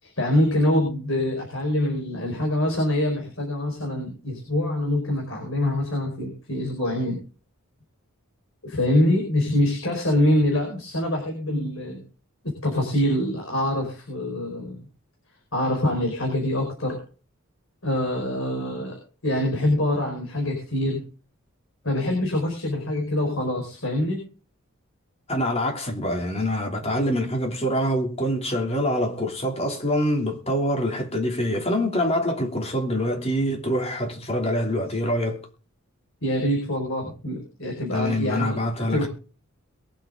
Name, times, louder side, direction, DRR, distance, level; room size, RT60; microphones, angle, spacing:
voice 1, 0.0-7.2 8.6-12.0 12.4-14.8 15.5-17.0 17.8-21.0 21.8-24.2 36.2-38.6 38.9-39.1, left 1 dB, 65° left, 5.0 m, -25 dB
voice 2, 25.3-35.4 37.9-39.1, equal, 30° left, 3.1 m, -25 dB
22.5 x 7.9 x 3.8 m
head